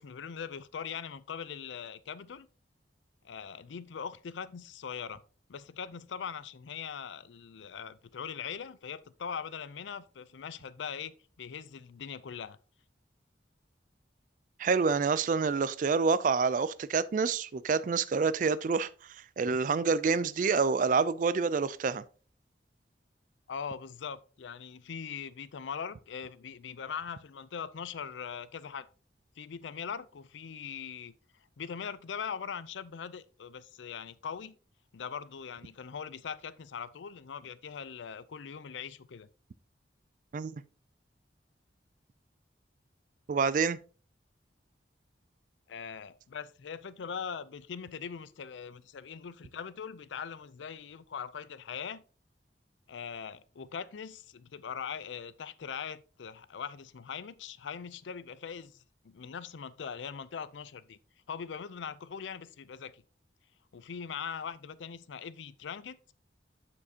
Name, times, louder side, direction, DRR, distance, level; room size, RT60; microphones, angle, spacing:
voice 1, 0.0-2.5 3.2-5.2 5.5-12.6 23.5-28.9 29.4-31.1 31.6-34.6 34.9-39.3 45.7-52.0 52.9-61.0 61.3-63.0 63.7-66.1, left 7 dB, 90° left, 0.5 m, -41 dB
voice 2, 14.6-18.9 19.4-22.0 40.3-40.6 43.3-43.8, right 5 dB, 45° right, 0.3 m, -27 dB
7.3 x 6.6 x 2.8 m
head